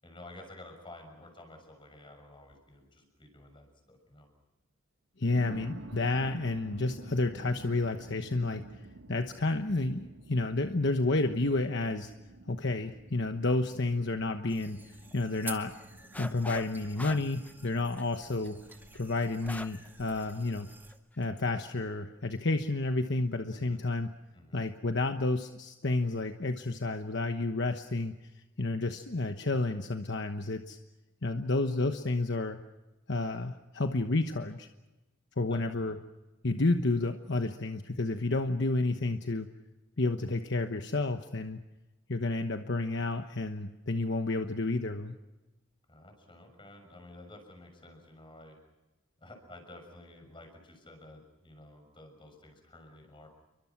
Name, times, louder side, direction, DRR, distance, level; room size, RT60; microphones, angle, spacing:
voice 1, 0.0-4.3 23.5-23.8 24.3-24.6 35.5-36.0 45.9-48.6 49.2-53.3, left 1 dB, 25° left, 5 dB, 6.6 m, -52 dB
sound 1, 2.5-2.7 3.4-3.5 5.2-20.8, right 2 dB, 80° right, 2.7 m, -51 dB
voice 2, 5.2-8.8 9.1-12.1 12.5-15.7 16.2-18.6 18.9-20.7 21.2-24.1 24.5-28.1 28.6-30.8 31.2-32.6 33.1-34.7 35.4-36.0 36.4-39.5 40.0-41.6 42.1-45.1, left 2 dB, 55° left, 6 dB, 1.1 m, -30 dB
sound 2, 14.5-21.0, right 3 dB, 10° right, 2.2 m, -50 dB
sound 3, 16.1-16.7 17.0-19.9 20.2-20.3 20.9-21.2, left 1 dB, 10° left, 0.7 m, -43 dB
29.5 x 23.5 x 6.0 m, 1.1 s
head